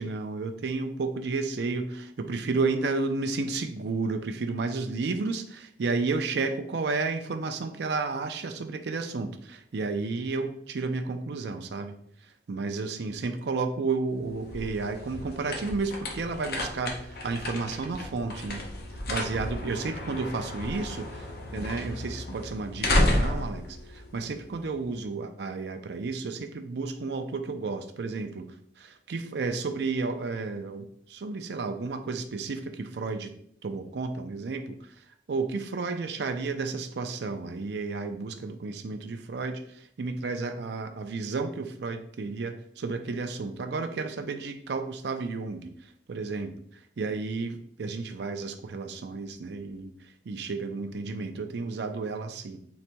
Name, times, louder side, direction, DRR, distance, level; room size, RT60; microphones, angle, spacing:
voice 1, 0.0-11.9 12.5-18.6 19.1-21.3 21.5-28.5 28.8-33.3 33.6-34.8 35.3-45.7 46.1-46.6 47.0-49.9 50.3-52.6, right 4 dB, 65° right, 7 dB, 0.4 m, -32 dB
sound 1, 14.1-24.8, left 1 dB, 60° left, 0.7 m, -32 dB
3.9 x 2.2 x 4.4 m, 0.67 s
head